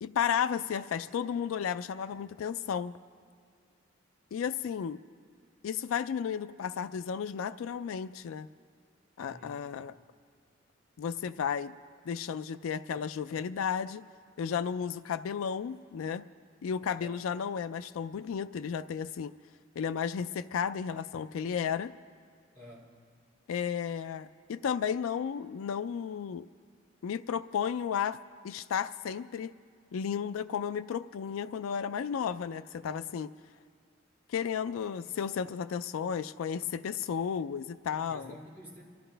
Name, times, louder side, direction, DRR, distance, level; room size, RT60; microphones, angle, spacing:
voice 1, 0.0-2.9 4.3-5.0 5.6-8.5 9.2-9.9 11.0-11.7 12.1-14.0 14.4-16.2 16.6-19.3 19.8-21.9 23.5-26.5 27.0-28.2 28.4-29.5 29.9-33.3 34.3-38.3, left 7 dB, 90° left, 14 dB, 0.3 m, -33 dB
voice 2, 9.2-9.6 17.0-17.2 22.5-22.9 38.1-38.8, equal, 15° left, -3 dB, 2.7 m, -49 dB
29.0 x 12.5 x 3.3 m, 2.1 s
head